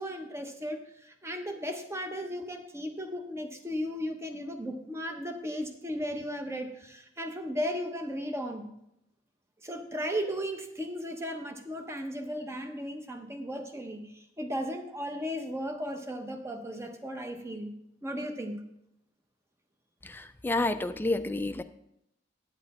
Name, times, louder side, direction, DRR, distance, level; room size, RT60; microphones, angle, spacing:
voice 1, 0.0-8.7 9.6-17.7 18.0-18.6, equal, 15° right, 5 dB, 0.8 m, -36 dB
voice 2, 20.0-21.6, left 2 dB, 10° left, 9 dB, 0.4 m, -30 dB
9.5 x 7.9 x 4.2 m, 0.81 s
head